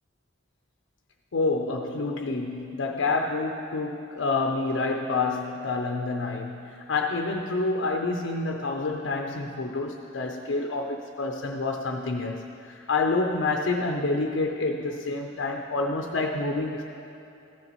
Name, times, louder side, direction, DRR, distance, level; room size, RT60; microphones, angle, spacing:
voice 1, 1.3-16.8, left 3 dB, 70° left, 2 dB, 0.5 m, -28 dB
15.0 x 6.7 x 2.9 m, 2.8 s
head